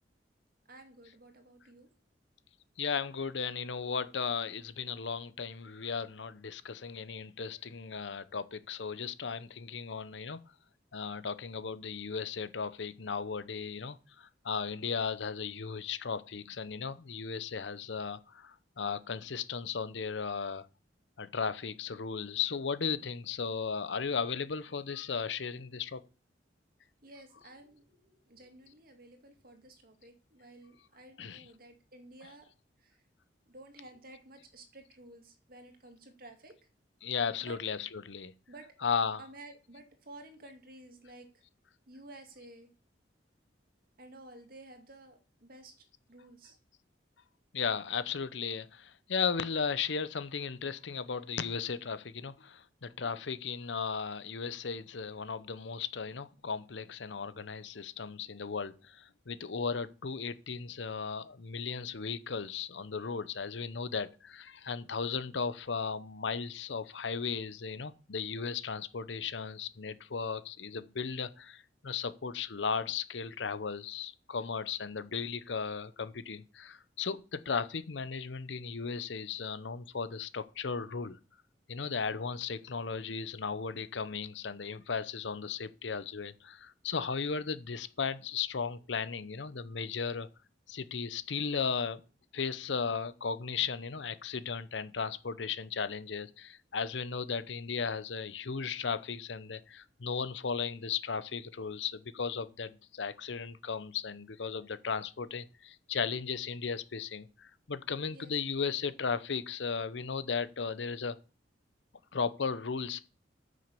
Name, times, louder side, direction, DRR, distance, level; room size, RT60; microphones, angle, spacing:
voice 1, 0.7-1.9 27.0-32.5 32.8-33.0 33.5-36.5 37.4-37.6 38.5-38.7 39.2-41.4 41.9-42.7 44.0-46.6 108.1-108.3, right 2 dB, 55° right, 2.2 m, -53 dB
voice 2, 2.8-10.4 10.9-20.7 21.2-26.0 31.2-31.5 37.0-38.3 38.8-39.2 47.5-81.2 81.7-90.3 90.7-92.0 92.3-111.2 112.1-113.0, left 5 dB, 80° left, 0.8 m, -36 dB
9.4 x 6.4 x 6.8 m
head